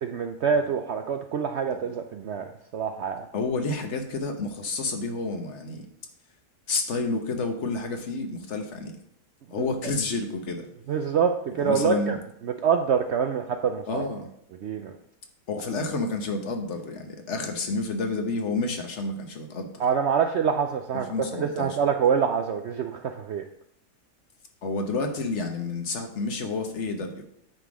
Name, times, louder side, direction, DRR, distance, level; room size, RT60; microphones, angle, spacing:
voice 1, 0.0-2.5 2.7-3.3 9.6-9.7 10.9-12.2 12.4-14.0 14.6-14.9 19.8-21.1 21.3-23.4, right 7 dB, 75° right, 6 dB, 0.6 m, -25 dB
voice 2, 3.3-5.9 6.7-9.0 9.5-10.7 11.6-12.2 13.9-14.3 15.5-19.7 21.1-21.8 24.6-27.2, left 3 dB, 50° left, 5 dB, 1.2 m, -30 dB
9.4 x 3.8 x 6.1 m, 0.73 s
omnidirectional pair, 1.7 m